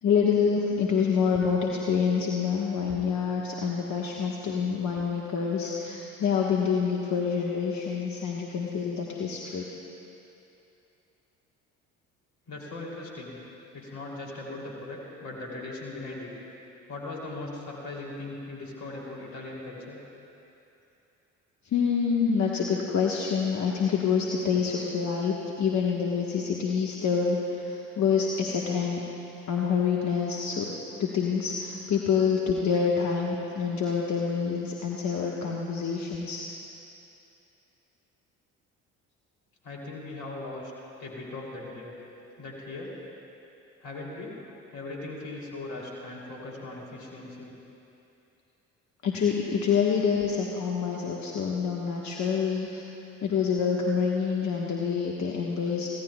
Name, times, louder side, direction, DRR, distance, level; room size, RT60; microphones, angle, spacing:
voice 1, 0.0-9.6 21.7-29.0 29.5-30.7 31.0-36.4 49.0-52.8 53.2-55.9, left 6 dB, 45° left, -2 dB, 1.4 m, -27 dB
voice 2, 12.5-13.4 13.7-16.3 16.9-20.0 39.6-40.7 41.0-41.9 42.4-42.9 43.8-44.4 44.7-47.5, left 2 dB, 65° left, -2 dB, 3.3 m, -39 dB
24.5 x 16.0 x 2.4 m, 2.8 s
figure-of-eight pair, 50°, 39 cm